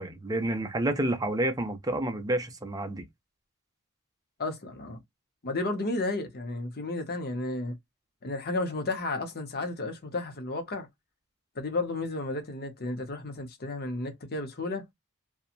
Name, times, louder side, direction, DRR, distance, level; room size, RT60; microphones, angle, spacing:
voice 1, 0.0-3.1, right 1 dB, 15° right, 0.6 m, -29 dB
voice 2, 4.4-5.0 5.4-7.8 8.2-10.9 11.6-14.8, left 2 dB, 45° left, 0.8 m, -32 dB
2.8 x 2.3 x 2.4 m
head